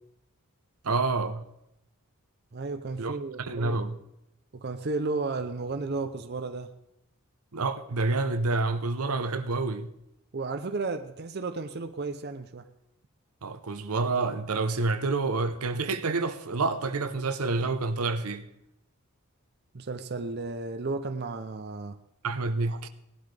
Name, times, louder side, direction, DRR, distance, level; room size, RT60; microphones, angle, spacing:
voice 1, 0.8-1.5 3.0-4.0 7.5-9.9 13.4-18.4 22.2-22.9, right 3 dB, 80° right, 0.8 m, -28 dB
voice 2, 2.5-3.8 4.5-6.7 10.3-12.7 19.7-22.0 22.7-22.8, right 3 dB, 45° right, 0.6 m, -33 dB
18.0 x 12.0 x 3.4 m
head